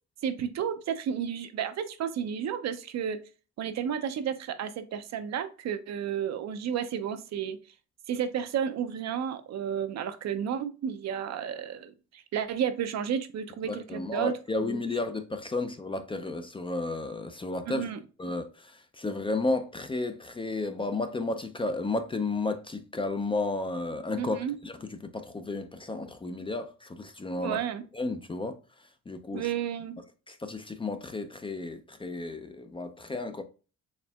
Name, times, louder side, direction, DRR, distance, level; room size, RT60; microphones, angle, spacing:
voice 1, 0.2-3.2 3.6-7.6 8.1-14.8 17.7-18.0 24.2-24.6 27.4-27.8 29.3-30.0, right 8 dB, 60° right, 0.6 m, -32 dB
voice 2, 13.6-17.9 18.2-24.4 24.6-27.6 27.9-28.6 29.1-29.5 30.3-33.4, left 2 dB, 20° left, 0.4 m, -33 dB
4.3 x 3.3 x 2.3 m
cardioid pair, 90°, 30 cm